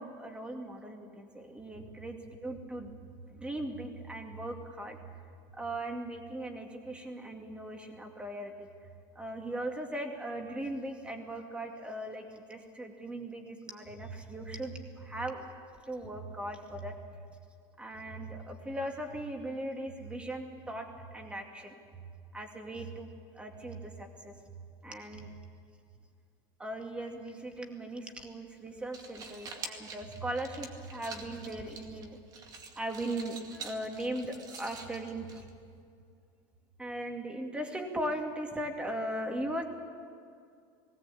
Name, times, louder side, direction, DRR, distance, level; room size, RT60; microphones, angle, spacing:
voice 1, 0.0-3.0 3.3-5.2 5.5-8.9 9.2-15.5 15.8-16.9 17.8-22.0 22.3-24.5 24.8-25.3 26.6-32.2 32.8-35.4 36.8-39.6, right 1 dB, 10° right, 3 dB, 2.3 m, -39 dB
sound 1, 28.8-35.8, right 4 dB, 35° right, 2.2 m, -47 dB
20.0 x 17.0 x 8.5 m, 2.3 s
supercardioid pair, 140°, 11 cm